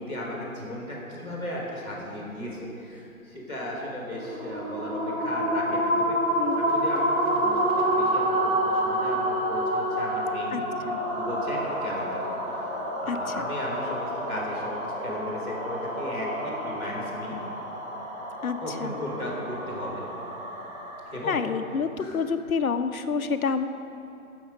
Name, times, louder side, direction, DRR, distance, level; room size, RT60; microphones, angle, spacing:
voice 1, 0.0-6.2 6.6-10.6 11.1-12.3 12.5-17.4 18.6-20.1 21.1-21.4 22.0-22.2, left 1 dB, 10° right, -10 dB, 2.2 m, -36 dB
sound 1, 4.1-21.5, right 1 dB, 30° right, 2.3 m, -29 dB
voice 2, 6.4-6.7 10.5-11.0 13.1-13.4 18.4-18.9 21.3-23.7, left 5 dB, 70° left, 8 dB, 1.0 m, -28 dB
17.0 x 7.1 x 6.3 m, 2.9 s
hypercardioid pair, 175°, 43 cm